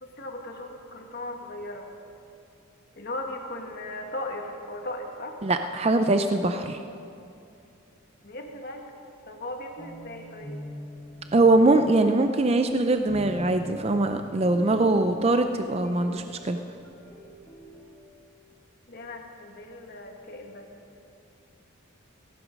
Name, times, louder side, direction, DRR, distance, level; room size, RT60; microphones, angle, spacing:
voice 1, 0.0-1.9 2.9-5.4 8.2-8.9 9.2-10.6 18.9-20.7, left 1 dB, 45° left, 2 dB, 1.5 m, -37 dB
voice 2, 5.4-6.8 11.3-16.6, right 2 dB, 30° right, 7 dB, 0.4 m, -22 dB
sound 1, 9.8-18.0, equal, 10° left, 1.5 m, -44 dB
16.5 x 15.0 x 5.2 m, 2.6 s
head